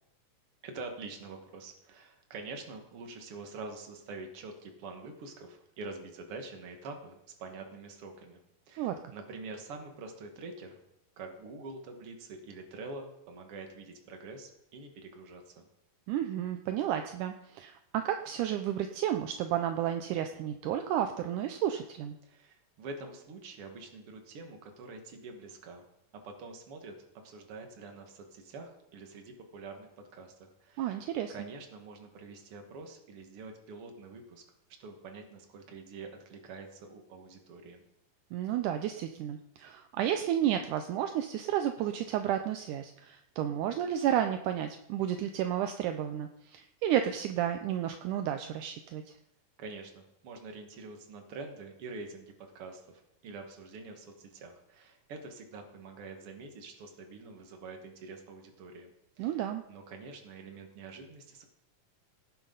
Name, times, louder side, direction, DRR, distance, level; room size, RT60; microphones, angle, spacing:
voice 1, 0.6-8.4 8.7-10.8 11.2-15.7 22.2-25.8 26.1-31.0 31.3-34.4 34.8-37.8 49.6-58.9 59.2-59.4 59.7-61.5, right 3 dB, 50° right, 4 dB, 2.3 m, -46 dB
voice 2, 16.1-22.2 30.8-31.3 38.3-49.2 59.2-59.6, right 10 dB, 80° right, 7 dB, 2.1 m, -32 dB
17.0 x 9.9 x 3.9 m, 0.82 s
omnidirectional pair, 3.8 m